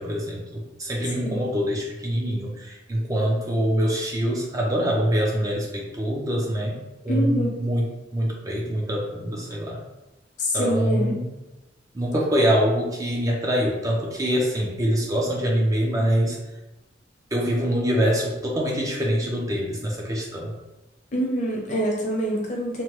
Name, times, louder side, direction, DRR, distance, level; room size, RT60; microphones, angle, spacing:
voice 1, 0.0-6.8 7.0-9.8 10.5-11.3 11.9-16.4 17.3-20.5, equal, 20° right, -2 dB, 0.4 m, -24 dB
voice 2, 7.1-7.5 10.4-11.1 21.1-22.8, equal, 40° left, -2 dB, 0.7 m, -25 dB
2.9 x 2.1 x 3.0 m, 1.0 s
head